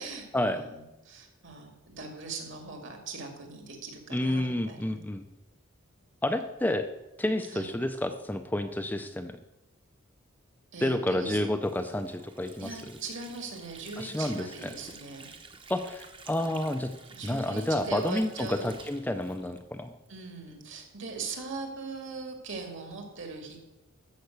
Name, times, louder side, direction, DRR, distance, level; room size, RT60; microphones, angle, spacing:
voice 1, 0.0-5.0 7.5-7.7 10.7-11.4 12.6-15.3 17.1-18.8 20.1-23.6, right 4 dB, 60° right, 3 dB, 2.5 m, -40 dB
voice 2, 4.1-5.2 6.2-6.9 7.2-9.4 10.8-12.8 14.0-14.7 15.7-16.9 17.2-19.9, left 1 dB, 10° left, 7 dB, 0.5 m, -30 dB
Water / Sink (filling or washing), 11.6-20.1, right 4 dB, 25° right, 1.0 m, -50 dB
13.5 x 5.8 x 8.0 m, 0.97 s
head